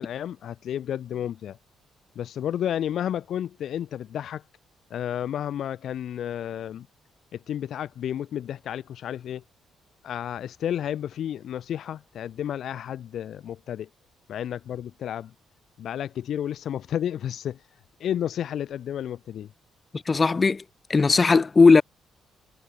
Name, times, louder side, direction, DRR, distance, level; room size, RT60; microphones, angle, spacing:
voice 1, 0.0-1.6 2.2-4.4 4.9-6.9 7.3-9.4 10.0-13.9 14.3-15.3 15.8-17.6 18.0-19.5, left 10 dB, 70° left, 1.8 m, -31 dB
voice 2, 20.1-20.6 20.9-21.8, left 4 dB, 30° left, 1.3 m, -17 dB
cardioid pair, 90°, 0 cm